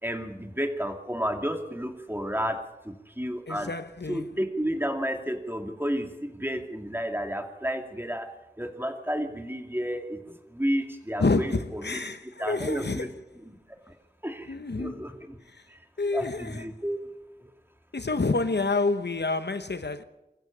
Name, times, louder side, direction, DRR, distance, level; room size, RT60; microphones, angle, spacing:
voice 1, 0.0-2.6 2.8-3.7 4.1-8.3 8.6-13.1 13.4-13.5 14.2-15.4 16.1-17.0, equal, 10° right, 2.5 m, -31 dB
voice 2, 3.5-4.3 11.2-13.1 14.5-15.0 15.5-15.6 16.0-16.7 17.9-20.0, left 3 dB, 80° left, 1.0 m, -28 dB
24.5 x 14.5 x 7.3 m
wide cardioid pair, 45°, 17 cm